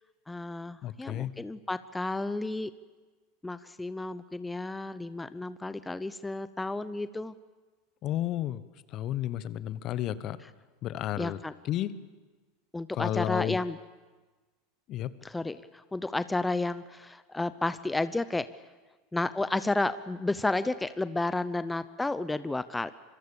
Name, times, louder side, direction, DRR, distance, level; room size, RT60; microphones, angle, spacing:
voice 1, 0.3-2.7 3.4-7.3 11.2-11.5 12.7-13.8 15.2-18.5 19.1-22.9, left 2 dB, 10° left, 14 dB, 0.7 m, -32 dB
voice 2, 0.8-1.3 8.0-8.6 8.9-10.4 10.8-11.4 11.6-11.9 12.9-13.6 14.9-15.1, left 12 dB, 45° left, 16 dB, 1.1 m, -32 dB
26.5 x 23.5 x 7.1 m, 1.3 s
hypercardioid pair, 85°, 0 cm